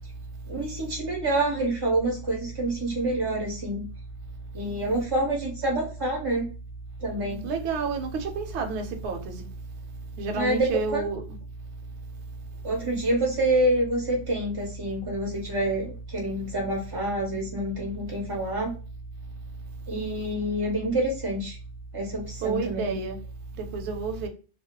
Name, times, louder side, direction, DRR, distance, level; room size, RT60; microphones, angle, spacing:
voice 1, 0.5-3.8 4.5-6.5 7.0-7.4 10.3-11.1 12.6-18.7 19.9-21.6 21.9-23.0, right 1 dB, 35° right, 0.4 m, -27 dB
voice 2, 7.4-9.4 10.2-11.2 22.4-23.2 23.6-24.3, right 4 dB, 70° right, 0.8 m, -30 dB
2.2 x 2.1 x 2.9 m
omnidirectional pair, 1.3 m